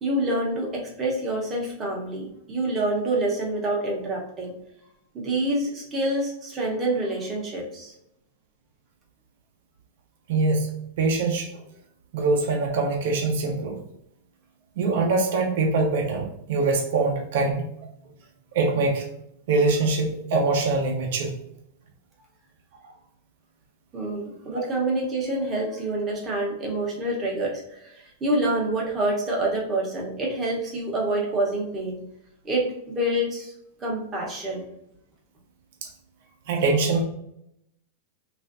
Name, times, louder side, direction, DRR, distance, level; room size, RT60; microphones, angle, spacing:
voice 1, 0.0-4.6 5.1-7.9 23.9-32.1 32.4-33.5 33.8-34.7, right 1 dB, 20° right, -2 dB, 0.8 m, -27 dB
voice 2, 10.3-10.7 11.0-11.6 12.1-13.8 14.8-17.7 18.5-19.1 19.5-21.3 35.8-35.9 36.5-37.0, right 3 dB, 60° right, 1 dB, 0.6 m, -23 dB
3.2 x 2.5 x 2.5 m, 0.78 s
supercardioid pair, 165°, 0 cm